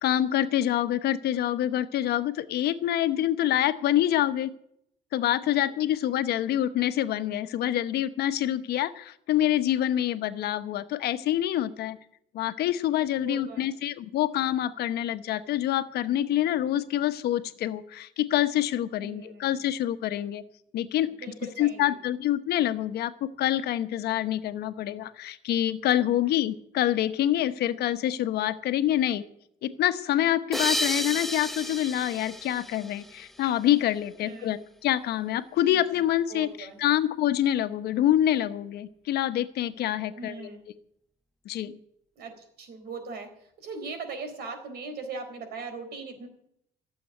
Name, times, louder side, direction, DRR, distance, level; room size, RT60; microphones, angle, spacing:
voice 1, 0.0-4.5 5.1-12.0 12.3-20.4 20.7-21.1 21.6-29.2 29.6-40.5 41.4-41.8, left 12 dB, 70° left, 11 dB, 1.1 m, -26 dB
voice 2, 13.2-13.7 19.0-19.6 21.0-21.9 26.2-26.4 34.2-34.5 35.7-35.8 36.3-36.8 40.1-40.6 42.2-46.3, right 4 dB, 70° right, 7 dB, 4.2 m, -40 dB
sound 1, 30.5-33.6, left 1 dB, ahead, 0.6 m, -32 dB
15.5 x 7.7 x 9.2 m, 0.71 s
cardioid pair, 110°, 17 cm